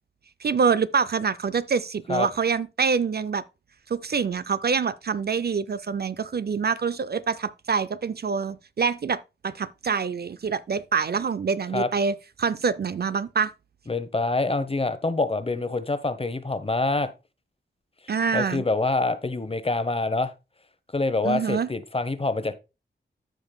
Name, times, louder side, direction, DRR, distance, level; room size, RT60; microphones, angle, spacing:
voice 1, 0.4-3.4 3.9-13.5 18.1-18.6 21.2-21.7, right 5 dB, 50° right, 0.5 m, -26 dB
voice 2, 13.9-17.1 18.3-20.3 20.9-22.5, left 3 dB, 30° left, 0.9 m, -26 dB
14.0 x 5.2 x 2.3 m
wide cardioid pair, 120°, 20 cm